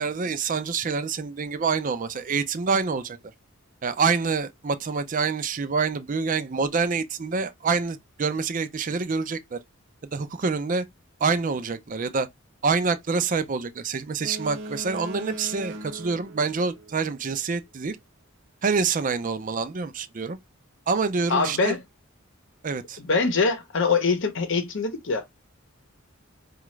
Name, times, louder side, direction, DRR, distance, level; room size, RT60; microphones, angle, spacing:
voice 1, 0.0-3.2 3.8-9.6 10.1-10.9 11.2-12.3 12.6-18.0 18.6-20.4 20.9-21.8 22.6-23.0, right 4 dB, 40° right, 0.5 m, -26 dB
Boat Water vehicle, 14.2-17.3, right 1 dB, 60° right, 0.9 m, -39 dB
voice 2, 21.3-21.8 23.0-25.3, left 4 dB, 65° left, 0.7 m, -23 dB
4.8 x 2.4 x 3.1 m
head